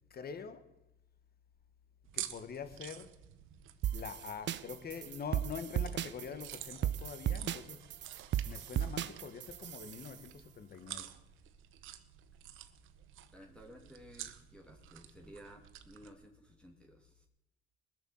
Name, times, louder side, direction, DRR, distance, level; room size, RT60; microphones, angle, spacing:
voice 1, 0.1-0.7 2.1-3.1 3.9-7.9 8.4-11.1, left 6 dB, 50° left, 1.6 m, -45 dB
sound 1, 2.0-16.1, right 12 dB, 85° right, 1.0 m, -50 dB
sound 2, 3.8-10.2, right 11 dB, 65° right, 0.7 m, -36 dB
voice 2, 13.3-17.3, equal, 5° left, 2.4 m, -55 dB
20.0 x 6.9 x 7.9 m
cardioid pair, 90°, 20 cm